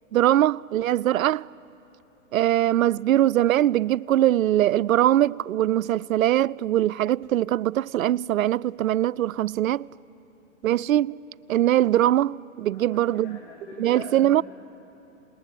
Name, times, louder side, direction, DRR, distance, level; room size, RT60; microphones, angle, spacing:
voice 1, 0.1-1.5 2.3-9.9 10.6-11.2 11.5-13.4 13.8-14.4, right 12 dB, 90° right, 0.5 m, -22 dB
voice 2, 12.7-14.4, left 4 dB, 50° left, 4.7 m, -43 dB
27.5 x 20.0 x 9.9 m
hypercardioid pair, 145°, 40 cm